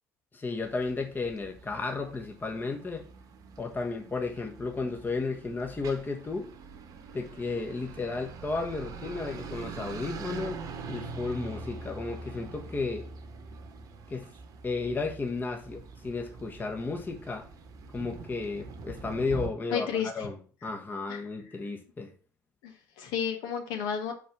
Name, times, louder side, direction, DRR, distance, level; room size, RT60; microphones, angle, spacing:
voice 1, 0.3-3.1 3.6-6.5 7.1-10.6 10.9-13.1 14.1-14.3 14.6-17.5 17.9-22.1, left 3 dB, 25° left, 2 dB, 1.3 m, -33 dB
sound 1, 0.6-19.5, right 4 dB, 50° right, 1.2 m, -44 dB
voice 2, 19.7-20.3 21.1-21.2 22.6-24.1, left 7 dB, 65° left, 4 dB, 1.6 m, -32 dB
5.7 x 5.1 x 6.0 m, 0.42 s
figure-of-eight pair, 55°, 8 cm